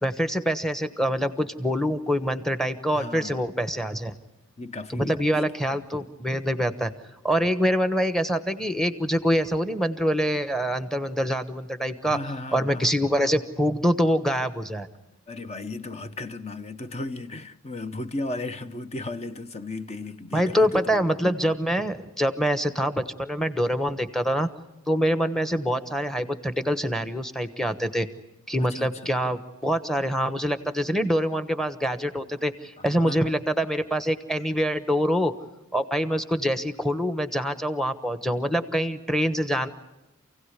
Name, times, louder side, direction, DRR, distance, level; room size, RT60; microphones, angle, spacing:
voice 1, 0.0-4.2 4.9-6.9 7.2-12.2 12.5-14.9 20.3-24.5 24.9-28.1 28.5-35.3 35.7-39.7, equal, ahead, 1.2 m, -25 dB
voice 2, 2.9-3.5 4.6-5.5 7.4-7.5 12.0-12.9 15.3-20.8 28.7-29.1 32.8-33.3, left 2 dB, 30° left, 1.0 m, -35 dB
28.0 x 16.5 x 9.8 m
head